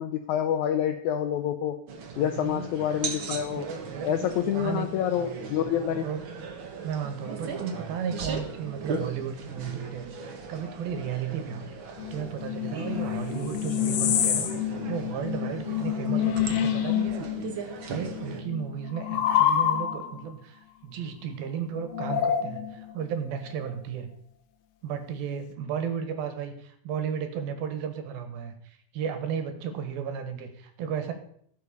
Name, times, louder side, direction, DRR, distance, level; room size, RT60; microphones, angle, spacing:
voice 1, 0.0-1.8 2.2-3.7 4.0-6.1, left 9 dB, 90° left, 8 dB, 1.7 m, -27 dB
sound 1, 1.9-18.4, right 5 dB, 50° right, 1.6 m, -38 dB
voice 2, 2.1-2.7 3.6-4.9 6.0-6.3 6.8-11.7 12.1-17.3 17.6-24.1 24.8-31.1, right 7 dB, 80° right, 8 dB, 3.3 m, -34 dB
sound 2, 12.0-17.6 17.8-20.2 21.9-22.9, left 10 dB, 65° left, 1.8 m, -27 dB
15.5 x 6.7 x 6.8 m, 0.67 s
omnidirectional pair, 4.3 m